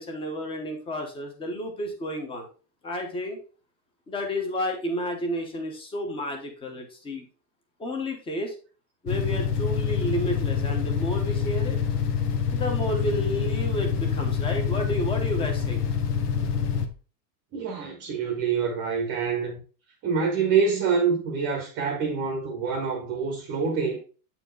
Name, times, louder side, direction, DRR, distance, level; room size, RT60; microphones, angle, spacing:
voice 1, 0.0-2.5 2.8-3.4 4.1-7.2 7.8-8.5 9.0-11.8 12.5-15.8, equal, 10° left, 1.0 m, -31 dB
sound 1, 9.1-16.9, left 7 dB, 75° left, 1.2 m, -26 dB
voice 2, 17.5-19.6 20.0-24.0, right 5 dB, 25° right, 0.9 m, -26 dB
8.3 x 4.5 x 3.8 m
supercardioid pair, 175°, 46 cm